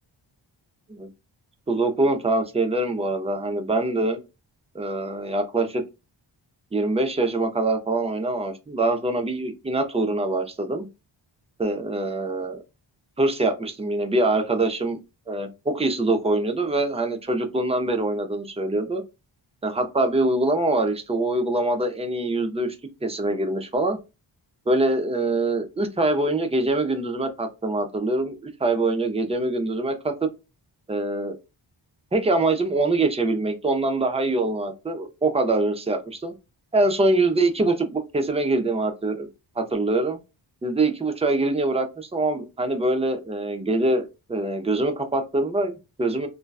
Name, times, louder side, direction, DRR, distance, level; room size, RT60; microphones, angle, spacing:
voice 1, 1.7-4.2 4.7-5.8 6.7-10.9 11.6-12.6 13.2-15.0 15.3-19.0 19.6-22.8 23.0-24.0 24.7-29.9 30.2-30.3 30.9-31.4 32.1-36.3 36.7-39.3 39.6-40.2 40.6-46.3, right 2 dB, 15° right, 0.4 m, -24 dB
2.6 x 2.1 x 2.3 m
wide cardioid pair, 80°, 49 cm